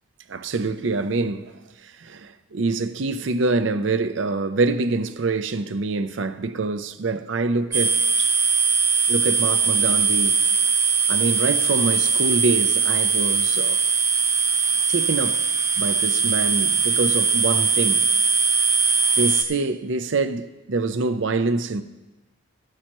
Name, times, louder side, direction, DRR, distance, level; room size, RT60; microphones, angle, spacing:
voice 1, 0.3-8.3 9.1-10.4 11.1-13.8 14.9-15.4 15.8-18.1 19.2-21.8, right 3 dB, 65° right, 0.6 m, -25 dB
sound 1, 7.7-19.4, right 5 dB, 15° right, 0.5 m, -20 dB
12.5 x 12.5 x 3.0 m
head